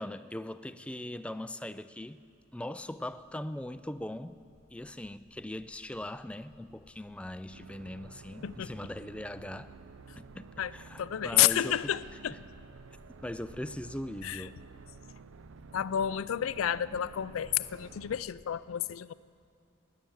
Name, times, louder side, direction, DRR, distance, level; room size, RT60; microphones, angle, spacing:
voice 1, 0.0-2.2 2.5-4.4 4.7-9.7 10.2-10.5 10.7-11.9 13.2-14.6, left 1 dB, 5° left, 13 dB, 0.3 m, -40 dB
sound 1, 2.2-18.5, equal, 20° right, 1.7 m, -60 dB
sound 2, 7.5-18.3, right 5 dB, 75° right, 0.5 m, -52 dB
voice 2, 11.0-12.4 14.2-14.4 15.7-19.1, left 11 dB, 90° left, 17 dB, 0.4 m, -30 dB
18.0 x 10.5 x 7.1 m, 2.5 s
head